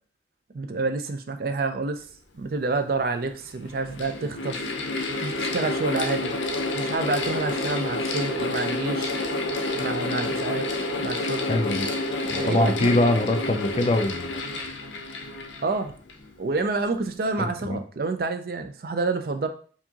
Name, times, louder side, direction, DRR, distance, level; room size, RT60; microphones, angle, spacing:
voice 1, 0.5-2.0 2.3-4.7 5.2-6.4 6.7-9.1 9.7-10.7 11.0-11.6 12.2-12.9 15.6-15.9 16.4-19.5, right 3 dB, 55° right, 8 dB, 0.4 m, -28 dB
Mechanical fan, 2.7-2.8 3.6-16.3, left 2 dB, 90° left, 0.6 m, -29 dB
voice 2, 11.5-11.9 12.3-14.4 17.4-17.8, left 2 dB, 35° left, 7 dB, 0.3 m, -23 dB
4.5 x 2.8 x 2.8 m, 0.43 s
head